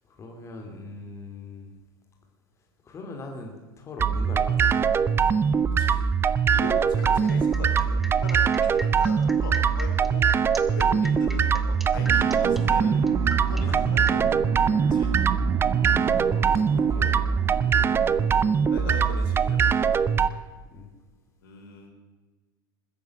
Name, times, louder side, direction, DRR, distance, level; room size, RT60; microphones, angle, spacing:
voice 1, 0.0-1.7 2.8-4.9 7.1-7.2 11.0-11.1 13.6-14.1 15.2-15.3 16.7-17.2 19.2-19.3 20.7-20.9, left 3 dB, 25° left, 2 dB, 2.6 m, -41 dB
sound 1, 4.0-20.3, right 6 dB, 20° right, 0.6 m, -22 dB
voice 2, 6.5-10.3 10.7-13.1 13.5-14.3 14.9-15.1 18.7-20.0 21.4-21.9, left 3 dB, 65° left, 2 dB, 3.9 m, -39 dB
sound 2, 7.0-14.2, equal, ahead, 1.3 m, -39 dB
sound 3, 11.9-20.1, right 7 dB, 35° right, 1.3 m, -35 dB
21.0 x 10.5 x 6.4 m, 1.3 s
figure-of-eight pair, 85°, 12 cm